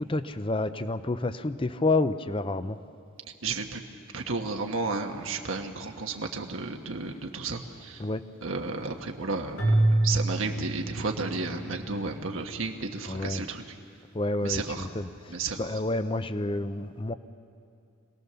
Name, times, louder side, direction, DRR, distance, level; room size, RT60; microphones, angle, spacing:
voice 1, 0.0-2.8 8.0-8.3 13.1-13.4 14.1-17.1, left 2 dB, 25° left, 12 dB, 0.6 m, -29 dB
voice 2, 3.4-3.8 4.1-8.1 8.4-13.7 14.4-14.9 15.3-15.7, right 3 dB, 75° right, 3 dB, 1.3 m, -33 dB
Keyboard (musical), 9.6-11.8, right 1 dB, 75° left, 4.5 m, -26 dB
26.0 x 18.0 x 6.9 m, 2.4 s
head